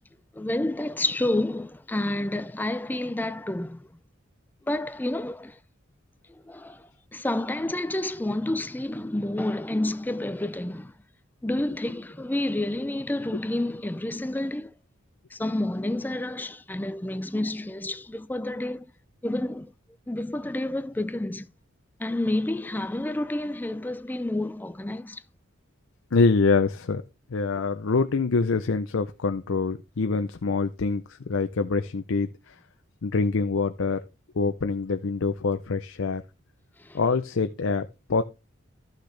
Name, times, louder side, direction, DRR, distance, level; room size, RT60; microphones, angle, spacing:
voice 1, 0.3-3.9 4.7-5.6 6.3-10.9 11.4-14.7 15.3-18.9 19.2-19.7 20.1-21.5 22.0-25.2 36.8-37.0, left 1 dB, 10° left, 0.4 m, -29 dB
voice 2, 26.1-27.0 27.3-32.5 33.0-34.0 34.4-36.2 36.9-38.2, left 4 dB, 75° left, 0.6 m, -25 dB
13.0 x 6.5 x 3.3 m
head